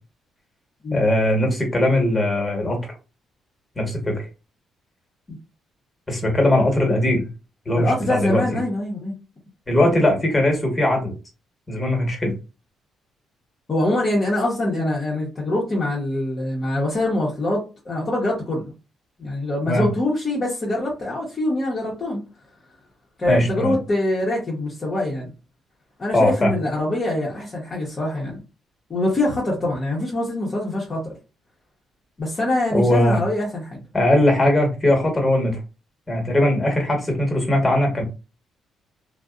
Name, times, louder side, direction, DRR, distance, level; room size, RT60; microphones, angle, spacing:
voice 1, 0.9-2.8 3.8-4.2 6.1-7.3 7.7-8.4 9.7-11.1 11.7-12.3 19.6-19.9 23.3-23.8 26.1-26.5 32.7-33.2 33.9-35.6 36.1-38.0, left 1 dB, 20° left, 2 dB, 1.1 m, -20 dB
voice 2, 7.8-9.1 13.7-18.7 19.2-22.2 23.2-25.3 26.0-28.4 28.9-31.1 32.2-33.8, left 1 dB, 35° left, -4 dB, 0.8 m, -24 dB
2.5 x 2.0 x 2.4 m, 0.31 s
cardioid pair, 90°, 0 cm